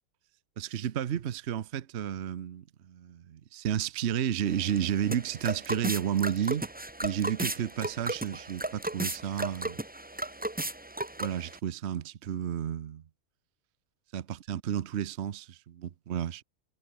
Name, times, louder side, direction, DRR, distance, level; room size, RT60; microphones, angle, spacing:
voice 1, 0.6-6.7 7.0-9.8 11.2-13.0 14.1-16.4, right 9 dB, 55° right, 1.0 m, -32 dB
sound 1, 4.5-11.6, right 1 dB, 10° right, 0.4 m, -35 dB
omnidirectional pair, 1.5 m